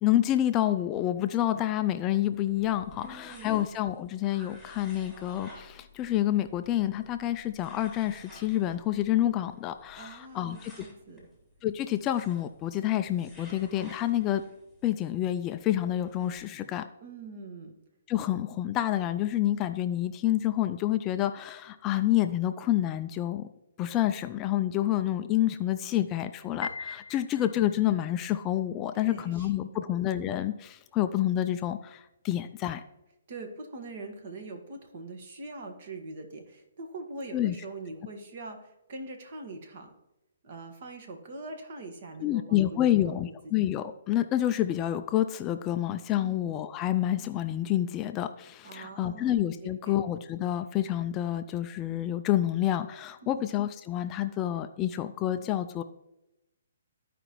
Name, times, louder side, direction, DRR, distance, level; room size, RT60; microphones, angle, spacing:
voice 1, 0.0-10.7 11.6-14.4 14.8-16.9 18.1-23.5 23.8-32.8 37.3-37.5 42.2-55.8, left 12 dB, 20° left, 9 dB, 0.3 m, -28 dB
sound 1, 2.2-16.4, left 1 dB, 5° right, 1.8 m, -54 dB
voice 2, 3.0-3.7 10.0-11.3 17.0-17.7 28.9-29.9 33.3-39.9 40.4-43.5 46.2-46.4 48.6-49.4 49.6-50.0 53.2-53.5, right 2 dB, 50° right, 5 dB, 1.5 m, -43 dB
Piano, 26.6-27.9, left 5 dB, 85° left, 0.8 m, -39 dB
14.0 x 5.0 x 3.1 m, 0.91 s
hypercardioid pair, 155°, 0 cm